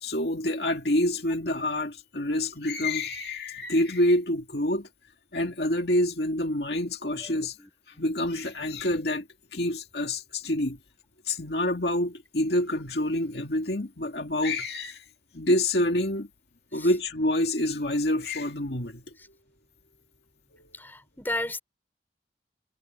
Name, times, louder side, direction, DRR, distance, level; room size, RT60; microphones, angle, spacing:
voice 1, 0.0-4.9 5.3-7.6 8.0-9.3 9.5-10.8 11.3-15.0 15.3-16.3 16.7-19.0 20.6-20.7, left 1 dB, 65° left, 2.4 m, -27 dB
voice 2, 7.2-7.7 16.8-16.9 20.8-21.6, left 1 dB, 10° left, 4.6 m, -34 dB
head